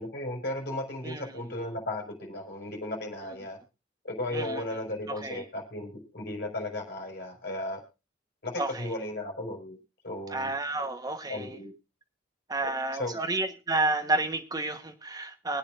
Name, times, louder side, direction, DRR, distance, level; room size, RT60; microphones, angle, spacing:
voice 1, 0.0-3.6 4.0-7.8 8.4-9.8 10.0-10.5 10.8-10.9 11.3-11.7 12.9-13.2, left 1 dB, 50° left, 0 dB, 5.2 m, -35 dB
voice 2, 4.3-4.6 5.1-5.4 8.6-8.9 10.3-11.6 12.5-15.6, right 2 dB, 20° right, 5 dB, 1.2 m, -31 dB
24.5 x 8.9 x 2.6 m, 0.29 s
head